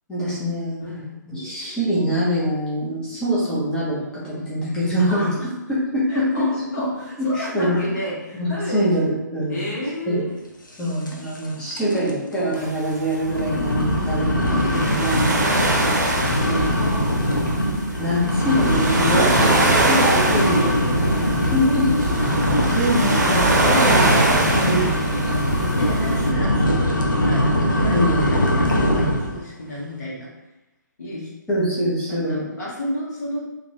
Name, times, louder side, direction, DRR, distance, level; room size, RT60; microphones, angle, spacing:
voice 1, 0.1-0.8 1.4-5.3 5.7-6.5 7.2-7.8 8.4-9.0 9.3-9.7 10.1-10.3 10.8-15.3 16.5-16.6 18.0-21.9 22.7-23.4 23.9-24.1 24.6-25.5 27.9-28.5 31.5-32.5, equal, 10° left, -9 dB, 0.8 m, -24 dB
voice 2, 0.8-1.1 5.1-5.3 6.1-8.9 9.5-10.3 11.0-11.2 15.1-17.1 20.3-20.6 21.6-22.2 22.5-23.3 23.7-24.2 25.7-30.3 31.0-31.3 32.1-33.5, equal, 60° left, -6 dB, 1.4 m, -31 dB
sound 1, 11.1-11.5 11.7-12.1 12.5-12.6 13.2-29.4, equal, 85° left, 0.7 m, -21 dB
sound 2, 12.6-26.3, right 2 dB, 60° right, 0.7 m, -23 dB
2.8 x 2.7 x 3.1 m, 0.97 s
figure-of-eight pair, 130°, 10 cm